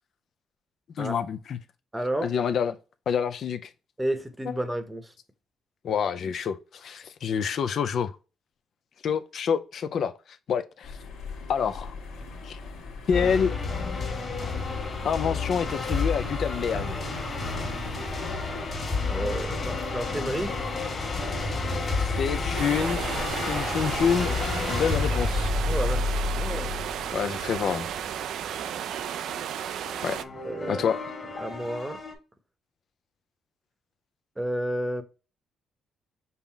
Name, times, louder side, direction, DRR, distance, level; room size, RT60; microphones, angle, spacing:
voice 1, 1.0-1.6 2.2-2.8 3.1-3.7 5.8-8.1 9.0-10.1 10.5-11.0 11.5-11.9 12.4-12.6 13.1-13.5 15.0-17.0 22.2-23.0 23.4-24.3 24.7-25.5 27.1-27.9 30.0-30.2 30.7-31.0, left 7 dB, 60° left, 0.4 m, -27 dB
voice 2, 1.9-2.3 4.0-5.1 19.1-20.5 25.7-26.7 30.4-30.9 31.4-32.0 34.4-35.0, right 1 dB, 10° right, 0.8 m, -31 dB
sound 1, 10.8-25.0, left 3 dB, 85° left, 1.4 m, -39 dB
sound 2, 13.1-28.1 29.9-32.2, left 3 dB, 35° left, 1.6 m, -30 dB
sound 3, 22.6-30.2, right 9 dB, 75° right, 0.3 m, -33 dB
5.5 x 2.0 x 4.4 m
cardioid pair, 90°, 0 cm